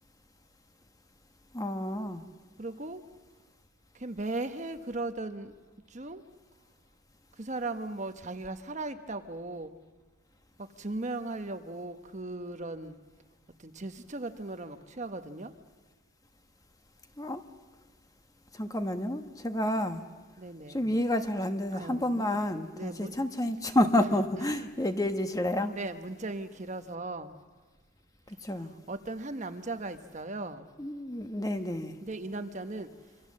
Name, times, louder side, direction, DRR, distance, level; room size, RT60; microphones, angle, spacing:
voice 1, 1.5-2.2 17.2-17.4 18.5-20.0 20.7-25.7 28.4-28.7 30.8-31.9, left 1 dB, 15° left, 7 dB, 1.2 m, -29 dB
voice 2, 2.6-3.0 3.9-5.5 5.9-6.2 7.4-9.8 10.6-13.0 13.6-15.5 20.4-20.9 21.7-22.3 22.8-23.1 24.0-24.1 24.4-24.7 25.7-27.4 28.5-30.7 32.0-32.9, right 2 dB, 35° right, 8 dB, 1.0 m, -37 dB
27.0 x 25.0 x 7.5 m, 1.3 s
head